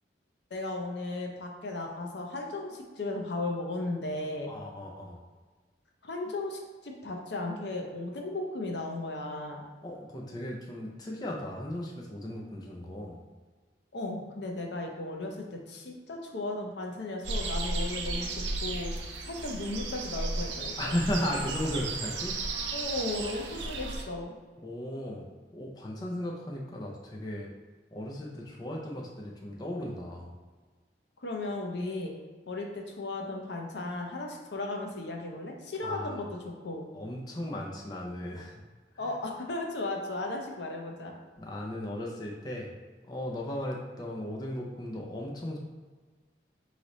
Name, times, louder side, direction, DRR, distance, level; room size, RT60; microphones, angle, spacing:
voice 1, 0.5-4.5 6.0-9.6 13.9-18.9 19.2-20.9 22.7-24.3 31.2-32.1 32.5-36.9 39.0-41.1, left 2 dB, 70° left, 1 dB, 0.7 m, -35 dB
voice 2, 4.5-5.2 9.8-13.2 20.8-22.4 24.6-25.2 25.5-27.5 27.9-30.3 35.8-36.2 36.9-38.5 38.9-39.1 41.4-42.7 43.1-45.6, left 1 dB, 20° left, -2 dB, 0.5 m, -36 dB
sound 1, 17.2-24.0, right 3 dB, 85° right, 0.6 m, -34 dB
3.7 x 3.2 x 4.1 m, 1.4 s
head